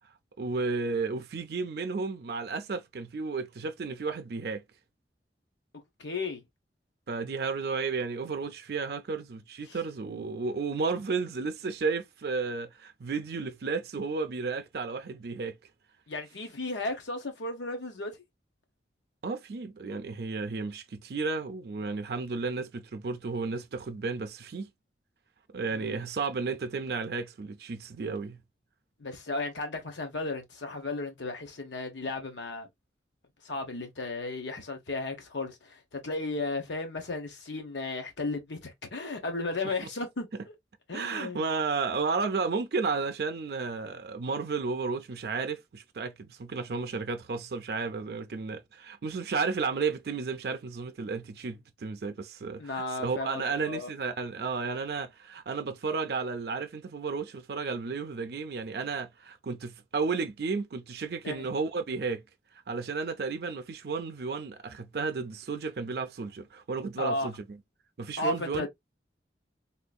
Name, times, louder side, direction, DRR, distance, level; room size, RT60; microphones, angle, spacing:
voice 1, 0.4-4.6 7.1-15.6 19.2-24.7 25.5-28.4 40.9-62.2 62.7-67.6 68.0-68.7, right 4 dB, 60° right, 0.4 m, -33 dB
voice 2, 6.0-6.4 9.7-9.8 16.1-18.1 25.7-26.0 29.0-32.7 33.4-40.3 40.9-41.5 52.6-53.9 61.2-61.4 67.0-67.3 68.2-68.7, left 2 dB, 85° left, 1.0 m, -34 dB
3.7 x 2.6 x 2.3 m
head